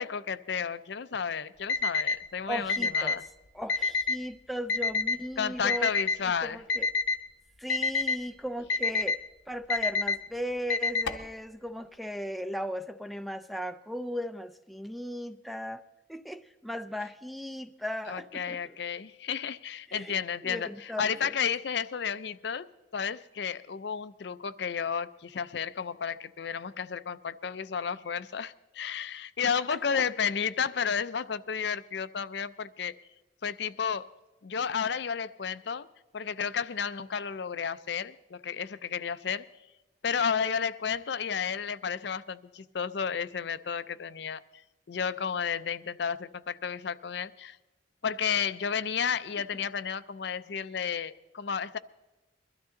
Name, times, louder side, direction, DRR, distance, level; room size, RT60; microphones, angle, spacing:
voice 1, 0.0-3.2 5.4-6.6 18.1-22.7 22.9-32.9 33.4-34.1 34.4-35.9 36.1-39.4 40.0-44.6 44.9-47.6 48.0-51.8, left 7 dB, 60° left, 14 dB, 0.5 m, -32 dB
Alarm, 1.7-2.2 2.7-3.2 3.7-4.2 4.7-5.2 5.7-6.2 6.7-7.2 7.7-8.2 8.7-9.2 9.7-10.2 10.7-11.2, left 4 dB, 80° left, 0.9 m, -27 dB
voice 2, 2.5-3.2 3.5-5.9 6.2-6.9 7.6-15.8 16.1-18.7 19.9-21.3 29.9-30.1, equal, ahead, 8 dB, 0.4 m, -37 dB
22.0 x 13.0 x 3.8 m, 1.0 s
head